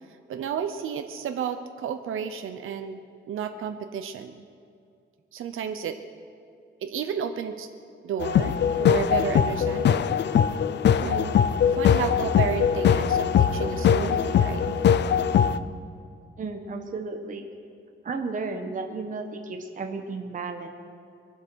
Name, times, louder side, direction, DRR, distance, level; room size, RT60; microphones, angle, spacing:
voice 1, 0.3-3.0 3.3-4.5 5.3-6.0 6.8-7.7 8.0-10.1 11.0-14.8, right 7 dB, 85° right, 7 dB, 0.8 m, -32 dB
sound 1, 8.2-15.6, left 8 dB, 60° left, 0.5 m, -21 dB
voice 2, 16.4-17.4 18.0-20.7, right 4 dB, 40° right, 4 dB, 1.2 m, -33 dB
23.0 x 8.1 x 6.3 m, 2.4 s
wide cardioid pair, 155°, 21 cm